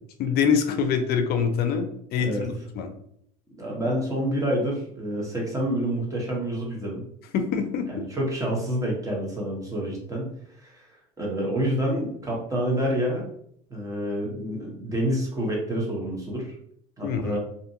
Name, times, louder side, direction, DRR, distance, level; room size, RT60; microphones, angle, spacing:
voice 1, 0.2-2.9 7.3-7.9 17.0-17.4, left 6 dB, 55° left, 6 dB, 0.5 m, -25 dB
voice 2, 3.6-7.0 7.9-10.3 10.6-10.9 11.2-13.2 13.7-16.5 17.0-17.4, equal, 15° right, -2 dB, 1.0 m, -28 dB
2.6 x 2.5 x 2.7 m, 0.70 s
supercardioid pair, 100°, 19 cm